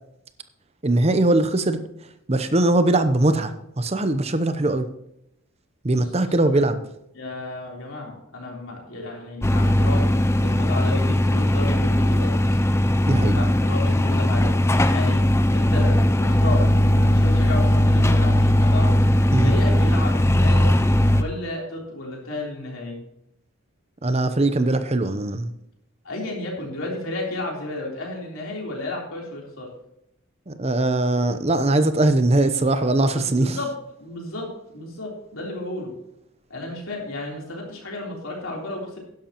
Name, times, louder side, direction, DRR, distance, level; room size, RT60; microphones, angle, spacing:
voice 1, 0.8-1.8 2.3-4.9 5.8-6.8 13.1-13.4 19.3-19.5 24.0-25.5 30.5-33.6, right 2 dB, 30° right, 10 dB, 0.7 m, -21 dB
voice 2, 5.9-6.3 7.1-10.1 10.4-12.3 13.3-14.6 14.9-15.2 15.5-18.9 19.4-20.7 21.2-23.0 26.0-29.7 33.1-33.7 34.0-35.9 36.5-39.0, left 2 dB, 70° left, -2 dB, 3.6 m, -32 dB
sound 1, 9.4-21.2, left 1 dB, 10° left, 0.4 m, -19 dB
12.0 x 10.5 x 3.0 m, 0.79 s
head